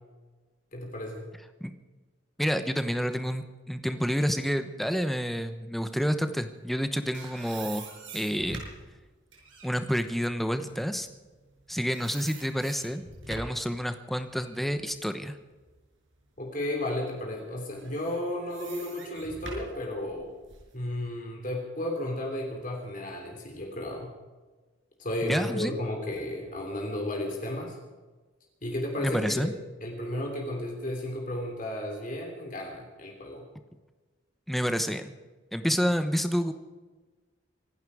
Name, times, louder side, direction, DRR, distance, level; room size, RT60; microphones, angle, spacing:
voice 1, 0.7-1.3 16.4-20.3 20.7-24.1 25.0-27.8 28.6-29.5 29.8-33.5, left 1 dB, 45° left, 0 dB, 3.1 m, -33 dB
voice 2, 2.4-7.8 8.1-8.6 9.6-11.1 11.7-15.4 25.2-25.7 29.0-29.5 34.5-35.2 35.5-36.5, equal, ahead, 8 dB, 1.0 m, -29 dB
sound 1, 6.7-11.6 11.9-13.7 14.1-16.1 16.6-16.7 17.7-20.7, right 3 dB, 80° right, 6.1 m, -45 dB
25.0 x 11.5 x 4.9 m, 1.3 s
head